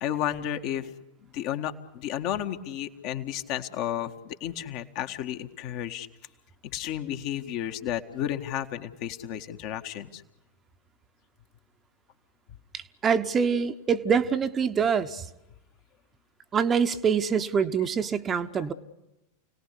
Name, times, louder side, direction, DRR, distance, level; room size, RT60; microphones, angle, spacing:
voice 1, 0.0-0.9 1.3-6.1 6.6-10.2, left 11 dB, 45° left, 6 dB, 1.7 m, -32 dB
voice 2, 12.7-15.3 16.5-18.7, right 6 dB, 25° right, 8 dB, 1.1 m, -25 dB
29.5 x 18.5 x 8.3 m, 0.95 s
figure-of-eight pair, 90°, 0 cm